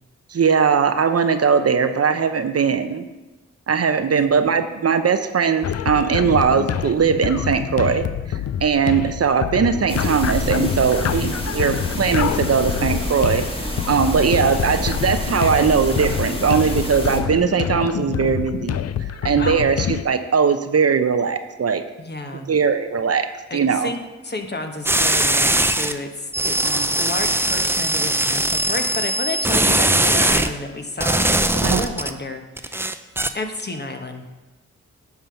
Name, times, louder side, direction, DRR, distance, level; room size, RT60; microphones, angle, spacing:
voice 1, 0.3-3.0 3.7-21.8 22.5-23.3 23.5-23.9 26.6-27.0 31.6-31.8, right 6 dB, 50° right, 9 dB, 0.7 m, -20 dB
sound 1, 5.6-20.0, left 9 dB, 55° left, 0.4 m, -26 dB
sound 2, 9.9-17.2, left 1 dB, 15° left, 1.7 m, -28 dB
voice 2, 22.0-22.5 23.5-33.0 33.3-34.2, left 2 dB, 35° left, 4 dB, 1.2 m, -31 dB
sound 3, 24.9-25.9 26.3-30.5 31.0-32.1 32.6-33.3, right 1 dB, 10° right, 0.5 m, -20 dB
10.0 x 3.9 x 5.7 m, 1.1 s
cardioid pair, 45°, 31 cm